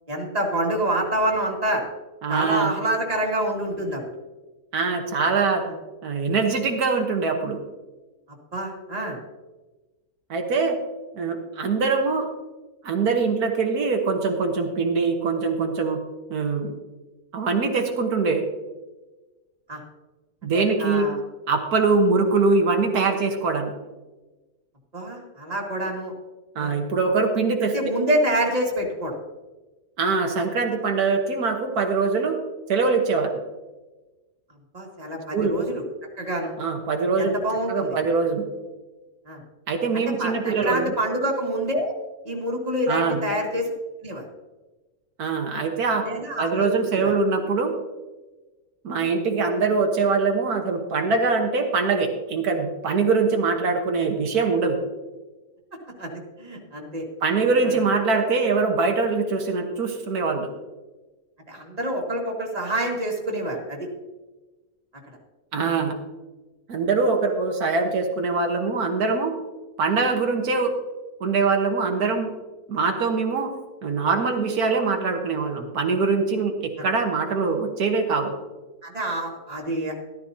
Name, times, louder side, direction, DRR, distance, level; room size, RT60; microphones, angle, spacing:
voice 1, 0.1-1.8 2.3-4.0 5.7-5.8 8.5-9.2 19.7-19.8 20.5-21.2 24.9-26.1 26.6-26.7 27.6-29.2 34.7-35.8 36.2-36.5 37.2-38.0 39.3-39.4 39.9-41.9 42.2-43.7 44.0-44.2 46.0-46.7 47.0-47.1 56.0-57.0 57.6-57.8 61.5-63.9 78.8-79.9, right 1 dB, 25° right, -2 dB, 2.2 m, -27 dB
voice 2, 2.2-2.7 4.7-5.6 6.0-7.6 10.3-10.8 11.2-12.3 12.8-16.0 16.3-16.7 17.3-18.4 20.4-21.1 21.5-23.7 26.5-27.7 30.0-32.4 32.7-33.3 35.3-35.6 36.6-37.4 37.7-38.5 39.7-40.9 42.9-43.2 45.2-46.1 46.4-47.7 48.8-54.8 57.2-60.5 65.5-65.9 66.7-69.3 69.8-70.8 71.2-72.3 72.7-73.5 73.8-78.3, right 4 dB, 85° right, 3 dB, 1.7 m, -23 dB
13.5 x 13.0 x 2.8 m, 1.2 s
omnidirectional pair, 1.6 m